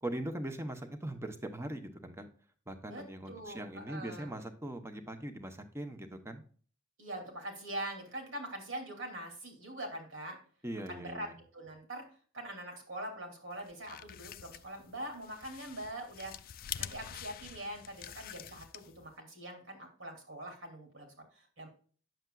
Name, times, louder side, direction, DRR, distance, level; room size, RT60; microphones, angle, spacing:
voice 1, 0.0-2.3 2.7-6.4 10.6-11.3, right 1 dB, 15° right, 7 dB, 0.9 m, -41 dB
voice 2, 2.9-4.3 7.0-10.4 10.9-11.3 11.5-12.1 12.3-16.3 16.8-21.7, right 1 dB, 75° right, 2 dB, 2.8 m, -43 dB
sound 1, 13.6-19.1, left 11 dB, 45° left, 0.4 m, -46 dB
9.2 x 7.2 x 2.3 m, 0.42 s
head